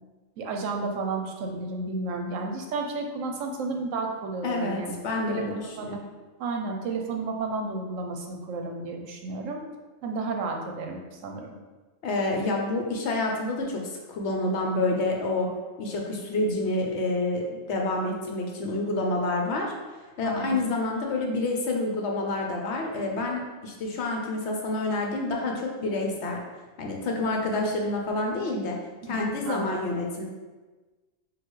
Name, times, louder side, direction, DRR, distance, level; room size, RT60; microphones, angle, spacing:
voice 1, 0.4-5.0 5.3-5.9 6.4-9.6 10.0-11.5 20.2-20.7 29.0-29.9, right 3 dB, 80° right, 3 dB, 1.0 m, -32 dB
voice 2, 4.4-6.0 12.0-15.5 15.8-19.7 20.2-26.4 26.8-28.8 29.0-30.2, left 2 dB, 65° left, 1 dB, 0.9 m, -28 dB
6.1 x 2.4 x 3.1 m, 1.3 s
omnidirectional pair, 1.3 m